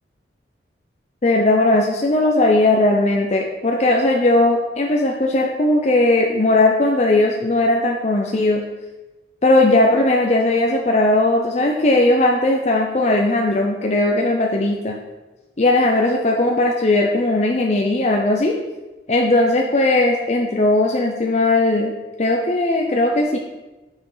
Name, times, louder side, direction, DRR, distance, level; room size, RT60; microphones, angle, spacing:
voice 1, 1.2-8.6 9.4-15.0 15.6-18.5 19.1-21.9 22.2-23.4, left 2 dB, 40° left, 1 dB, 0.6 m, -18 dB
6.7 x 6.1 x 5.6 m, 1.1 s
head